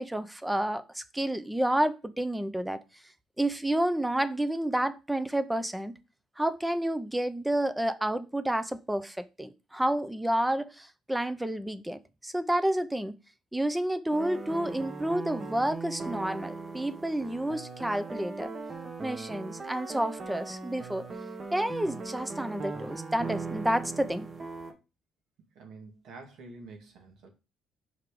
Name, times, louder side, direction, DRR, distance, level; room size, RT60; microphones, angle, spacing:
voice 1, 0.0-2.8 3.4-5.9 6.4-13.1 13.5-18.5 19.0-21.1 21.5-24.3, right 1 dB, 5° right, 0.6 m, -30 dB
sound 1, 14.1-24.7, right 4 dB, 35° right, 1.3 m, -39 dB
voice 2, 25.5-27.3, right 3 dB, 75° right, 2.2 m, -48 dB
5.7 x 4.6 x 5.0 m
cardioid pair, 125°, 0 cm